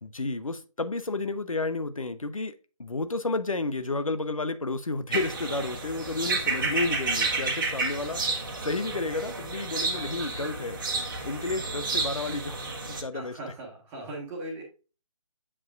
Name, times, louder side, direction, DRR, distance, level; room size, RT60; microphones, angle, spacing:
voice 1, 0.0-2.5 2.8-8.3 8.6-10.8 11.2-13.3, left 3 dB, 70° left, 0.9 m, -31 dB
sound 1, 5.1-13.0, right 3 dB, 35° right, 1.3 m, -31 dB
voice 2, 13.1-14.6, right 1 dB, 10° right, 1.6 m, -38 dB
8.5 x 5.0 x 2.4 m
figure-of-eight pair, 150°, 18 cm